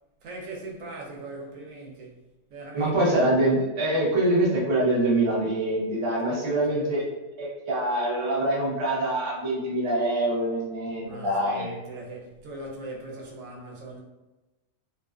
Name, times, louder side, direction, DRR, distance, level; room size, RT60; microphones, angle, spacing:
voice 1, 0.2-2.2 2.5-3.0 6.2-6.9 11.0-14.0, right 2 dB, 80° right, -1 dB, 0.9 m, -40 dB
voice 2, 2.7-7.0 7.4-11.7, right 1 dB, 35° right, -5 dB, 0.5 m, -24 dB
2.4 x 2.2 x 2.3 m, 1.1 s
omnidirectional pair, 1.4 m